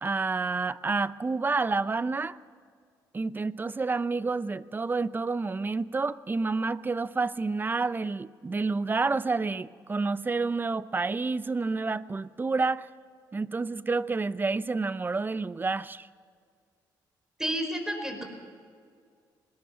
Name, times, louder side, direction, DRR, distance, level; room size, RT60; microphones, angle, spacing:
voice 1, 0.0-2.4 3.1-12.9 13.3-16.1, right 3 dB, 25° right, 16 dB, 0.6 m, -29 dB
voice 2, 17.4-18.2, equal, 5° right, 4 dB, 4.8 m, -30 dB
20.5 x 18.5 x 7.0 m, 2.1 s
cardioid pair, 85°, 8 cm